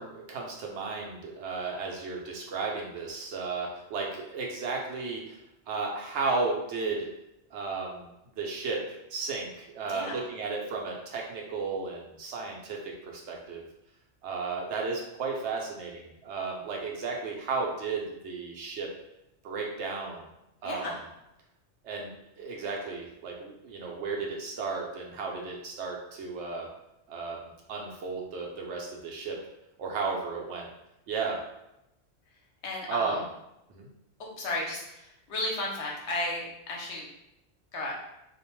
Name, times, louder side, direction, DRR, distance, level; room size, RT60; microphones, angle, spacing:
voice 1, 0.0-5.4 5.7-7.1 7.5-8.1 8.4-8.8 9.1-12.8 13.0-13.6 14.2-18.9 19.4-20.2 20.6-21.0 21.8-26.7 27.1-29.4 29.8-30.7 31.1-31.4 32.9-33.2 33.7-33.9, right 4 dB, 80° right, -1 dB, 0.9 m, -34 dB
voice 2, 20.6-21.0 32.6-33.2 34.2-37.1 37.7-37.9, left 2 dB, 80° left, -2 dB, 1.0 m, -34 dB
2.5 x 2.1 x 3.0 m, 0.86 s
omnidirectional pair, 1.1 m